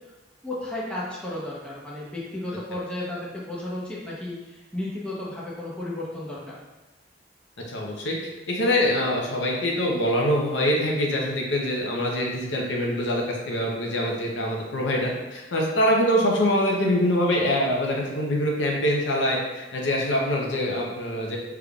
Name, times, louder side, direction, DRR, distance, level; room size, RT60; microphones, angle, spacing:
voice 1, 0.4-6.6, left 1 dB, 5° left, -7 dB, 0.8 m, -33 dB
voice 2, 7.7-8.2 8.5-21.4, equal, 80° left, -1 dB, 0.8 m, -24 dB
5.1 x 3.5 x 2.4 m, 1.1 s
head